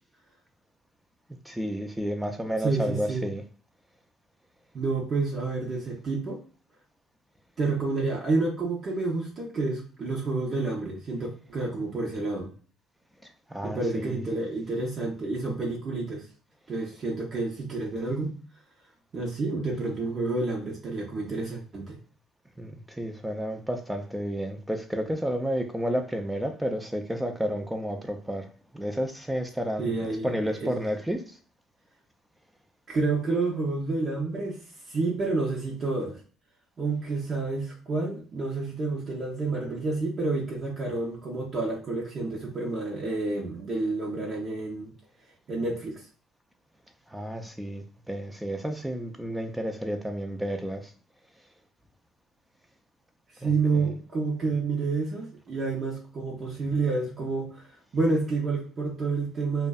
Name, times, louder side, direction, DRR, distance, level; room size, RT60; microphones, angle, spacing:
voice 1, 1.5-3.4 13.5-14.2 22.6-31.2 47.1-50.9 53.4-53.9, equal, 5° right, 0.4 m, -31 dB
voice 2, 2.6-3.2 4.7-6.4 7.6-12.5 13.6-16.3 16.7-18.3 19.1-22.0 29.8-30.8 32.9-36.2 36.8-44.9 45.5-46.1 53.3-59.7, right 3 dB, 45° right, 0.7 m, -29 dB
2.5 x 2.1 x 2.3 m
supercardioid pair, 70°, 0 cm